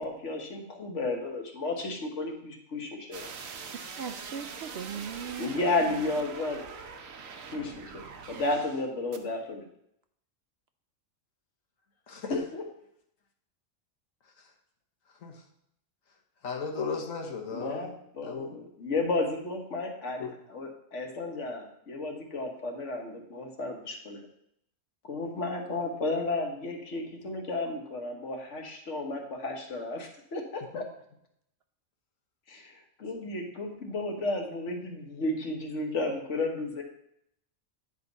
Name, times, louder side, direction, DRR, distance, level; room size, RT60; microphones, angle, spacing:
voice 1, 0.0-3.3 5.4-6.6 7.5-9.6 12.3-12.6 17.5-24.2 25.1-30.9 32.5-32.7 33.0-36.8, left 2 dB, 65° left, 2 dB, 1.6 m, -33 dB
sound 1, 3.1-8.9 9.1-9.2, right 5 dB, 90° right, 1.2 m, -43 dB
voice 2, 4.0-6.0 7.6-7.8, right 6 dB, 65° right, 7 dB, 0.7 m, -39 dB
voice 3, 16.4-17.9 18.2-18.6 20.2-20.3 30.7-30.8, left 4 dB, 80° left, 2 dB, 1.5 m, -35 dB
9.7 x 5.3 x 4.0 m, 0.74 s
omnidirectional pair, 1.4 m